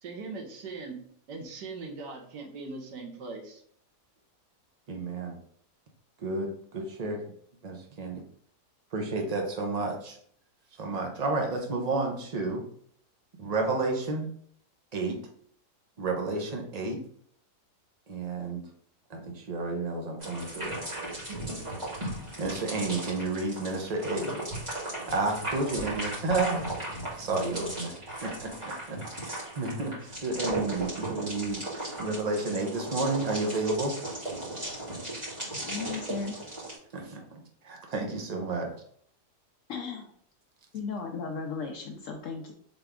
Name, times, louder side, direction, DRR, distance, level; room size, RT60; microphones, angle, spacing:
voice 1, 0.0-1.0 1.3-3.6, right 3 dB, 85° right, 2 dB, 1.6 m, -40 dB
voice 2, 4.9-5.4 6.2-7.2 7.6-8.2 8.9-10.2 10.8-12.6 13.4-14.3 14.9-15.2 16.0-17.0 18.1-18.6 19.1-20.8 21.3-21.6 22.4-24.3 25.1-26.7 27.1-27.9 28.2-29.0 29.5-31.6 32.0-34.0 36.9-38.7, right 3 dB, 40° right, 2 dB, 0.5 m, -31 dB
sound 1, 20.2-36.7, right 1 dB, 25° right, 2.0 m, -36 dB
voice 3, 35.6-36.3 39.7-40.1 40.7-42.5, left 5 dB, 70° left, 2 dB, 0.8 m, -35 dB
4.1 x 3.5 x 3.5 m, 0.62 s
omnidirectional pair, 1.8 m